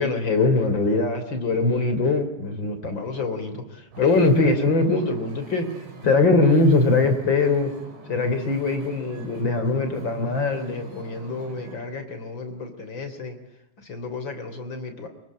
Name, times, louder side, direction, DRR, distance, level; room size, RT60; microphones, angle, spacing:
voice 1, 0.0-5.7 6.0-7.7 8.1-13.4 13.8-15.1, left 3 dB, 30° left, 7 dB, 3.4 m, -23 dB
Wind / Ocean, 3.9-11.8, right 2 dB, 75° right, 7.7 m, -43 dB
26.5 x 22.5 x 9.5 m, 0.84 s
omnidirectional pair, 5.0 m